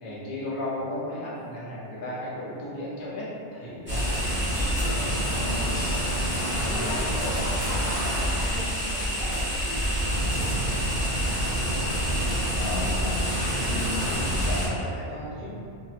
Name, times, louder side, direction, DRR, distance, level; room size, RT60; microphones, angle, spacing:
voice 1, 0.0-4.4 6.2-6.9 11.2-12.0 12.5-13.4 14.0-15.6, left 1 dB, 50° left, -8 dB, 0.9 m, -35 dB
sound 1, 3.6-8.8 9.1-10.0 10.3-10.4, equal, 40° right, 0.3 m, -46 dB
sound 2, 3.9-14.7, equal, 10° right, 1.0 m, -27 dB
sound 3, 4.1-5.2 5.5-5.6 5.8-7.8 9.3-9.6 10.2-10.6, right 1 dB, 60° right, 1.2 m, -44 dB
voice 2, 4.5-5.7 6.4-9.8 10.2-10.4 13.6-14.0, left 1 dB, 85° left, -5 dB, 1.0 m, -38 dB
3.7 x 2.3 x 2.8 m, 2.5 s
omnidirectional pair, 1.3 m